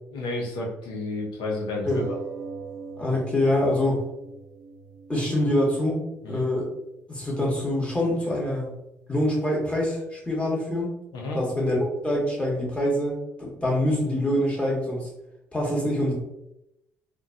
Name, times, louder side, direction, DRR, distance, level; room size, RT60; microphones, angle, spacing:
voice 1, 0.1-2.2 3.8-3.9 6.2-6.5 11.1-11.4, left 2 dB, 70° left, -1 dB, 0.8 m, -31 dB
sound 1, 1.9-6.9 7.6-7.7 8.0-8.1, right 4 dB, 50° right, 0.8 m, -41 dB
voice 2, 3.0-4.0 5.1-6.0 6.3-6.7 7.1-8.7 9.1-10.9 11.3-15.1 15.5-16.1, left 1 dB, 15° left, -3 dB, 1.4 m, -25 dB
3.7 x 2.4 x 2.3 m, 0.85 s
hypercardioid pair, 50°, 8 cm